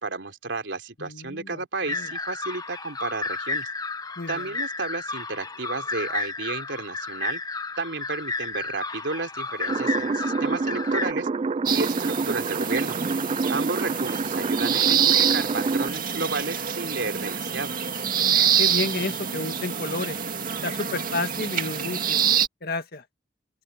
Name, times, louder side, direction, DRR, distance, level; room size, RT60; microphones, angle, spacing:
voice 1, 0.0-3.7 4.3-7.4 7.8-11.3 11.7-13.0 13.5-17.7, right 3 dB, 85° right, 3.4 m, -32 dB
voice 2, 1.0-2.1 4.2-4.5 18.2-20.2 20.6-22.2 22.6-23.0, left 3 dB, 60° left, 2.1 m, -31 dB
sound 1, 1.9-11.1, left 3 dB, 20° left, 1.0 m, -32 dB
sound 2, 9.7-15.9, right 4 dB, 35° right, 0.3 m, -27 dB
sound 3, 11.7-22.5, right 8 dB, 50° right, 2.1 m, -26 dB
open air
head